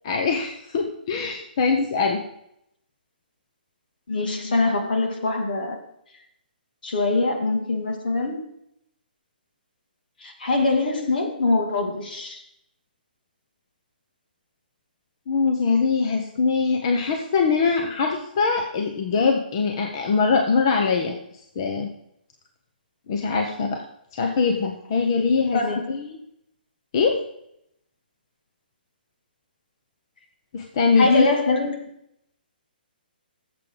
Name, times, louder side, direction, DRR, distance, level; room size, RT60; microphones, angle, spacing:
voice 1, 0.0-2.2 15.3-21.2 21.6-21.9 23.1-23.8 24.1-25.6 25.9-26.2 26.9-27.2 30.5-31.3, left 4 dB, 30° left, 3 dB, 0.8 m, -22 dB
voice 2, 4.1-5.8 6.8-8.4 10.2-12.4 25.5-25.9 31.0-31.8, left 3 dB, 60° left, 3 dB, 2.3 m, -23 dB
13.5 x 7.6 x 3.9 m, 0.77 s
hypercardioid pair, 175°, 5 cm